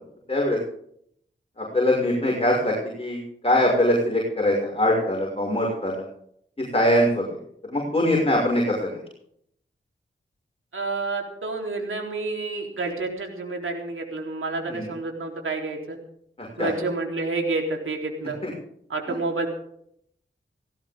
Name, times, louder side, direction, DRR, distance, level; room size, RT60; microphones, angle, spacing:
voice 1, 1.6-6.0 6.7-7.2 7.6-8.9 14.7-14.9 16.4-16.7 18.4-18.5, left 1 dB, 30° left, -2 dB, 6.2 m, -22 dB
voice 2, 10.7-16.0 16.6-18.4 18.9-19.5, right 3 dB, 85° right, 1 dB, 3.8 m, -29 dB
18.0 x 17.5 x 3.8 m, 0.69 s
cardioid pair, 50°, 21 cm